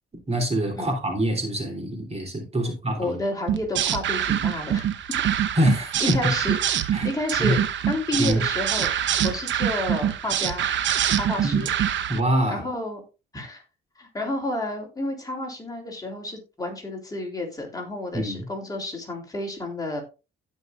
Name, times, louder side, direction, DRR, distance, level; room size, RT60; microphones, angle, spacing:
voice 1, 0.3-3.2 5.6-6.3 6.9-7.1 7.4-7.6 8.2-8.4 11.4-11.7 12.1-12.6 18.1-18.4, equal, 30° right, 3.4 m, -25 dB
voice 2, 3.0-4.9 6.0-6.6 7.0-8.9 9.2-10.7 11.1-11.7 12.5-13.0 13.3-13.6 14.0-20.0, left 1 dB, 20° left, 3.4 m, -30 dB
sound 1, 3.5-12.2, right 10 dB, 70° right, 1.0 m, -25 dB
16.0 x 5.4 x 2.6 m
cardioid pair, 90°, 20 cm